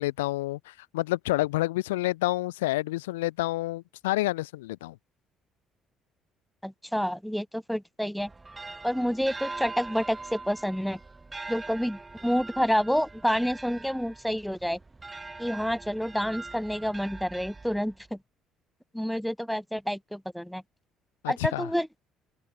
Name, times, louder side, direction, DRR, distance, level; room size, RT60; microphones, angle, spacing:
voice 1, 0.0-5.0 21.2-21.7, left 18 dB, 85° left, 1.0 m, -29 dB
voice 2, 6.6-8.3 8.8-11.0 11.5-14.8 15.4-18.2 18.9-20.6 21.3-21.9, equal, ahead, 1.2 m, -28 dB
sound 1, 8.2-18.1, right 3 dB, 25° right, 7.9 m, -42 dB
hypercardioid pair, 60°, 0 cm